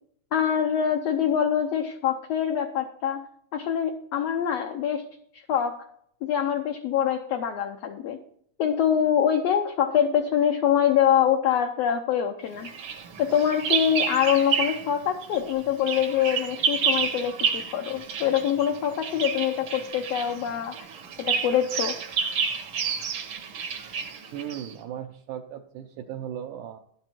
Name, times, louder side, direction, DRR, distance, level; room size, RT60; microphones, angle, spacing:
voice 1, 0.3-5.0 5.3-5.8 6.2-8.2 8.6-12.7 13.2-20.9 21.2-21.9, left 9 dB, 70° left, 4 dB, 1.6 m, -24 dB
Bird vocalization bird call bird song, 12.6-14.9 15.2-24.7, right 6 dB, 60° right, 1.5 m, -30 dB
voice 2, 24.3-26.8, right 10 dB, 75° right, 3 dB, 2.2 m, -37 dB
12.0 x 8.0 x 4.5 m, 0.65 s
omnidirectional pair, 3.8 m